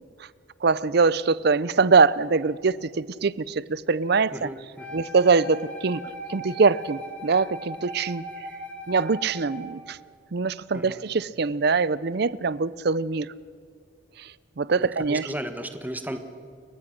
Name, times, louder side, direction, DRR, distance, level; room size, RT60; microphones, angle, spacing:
voice 1, 0.6-4.5 4.9-6.0 6.3-8.2 8.9-10.0 10.3-13.3 14.2-14.3 14.6-15.2, right 4 dB, 55° right, 19 dB, 0.5 m, -23 dB
voice 2, 4.3-5.0 10.7-11.0 14.8-16.2, right 1 dB, 10° right, 8 dB, 1.3 m, -35 dB
Wind instrument woodwind instrument, 4.8-9.8, right 1 dB, 5° left, 3.7 m, -39 dB
30.0 x 14.5 x 6.6 m, 2.2 s
head